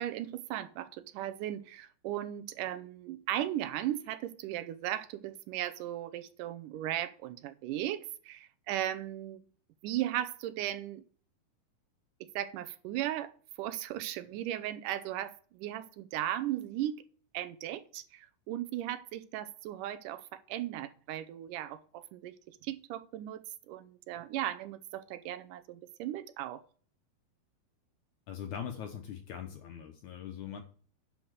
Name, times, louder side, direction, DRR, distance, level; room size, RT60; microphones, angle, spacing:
voice 1, 0.0-9.4 9.8-11.0 12.4-13.3 13.6-17.0 17.3-26.6, right 13 dB, 75° right, 2.0 m, -37 dB
voice 2, 28.3-30.6, left 8 dB, 70° left, 2.0 m, -41 dB
10.5 x 4.7 x 6.4 m
omnidirectional pair, 4.2 m